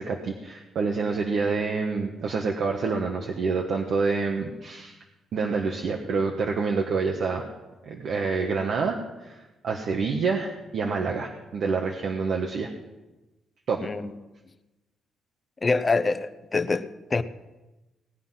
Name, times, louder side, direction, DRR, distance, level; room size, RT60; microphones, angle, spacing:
voice 1, 0.0-5.0 5.3-7.5 7.8-12.7 13.7-13.9, right 4 dB, 65° right, 1.4 m, -27 dB
voice 2, 13.8-14.1 15.6-16.9 17.1-17.2, left 3 dB, 25° left, 0.8 m, -25 dB
19.0 x 9.3 x 5.8 m
cardioid pair, 110°, 0 cm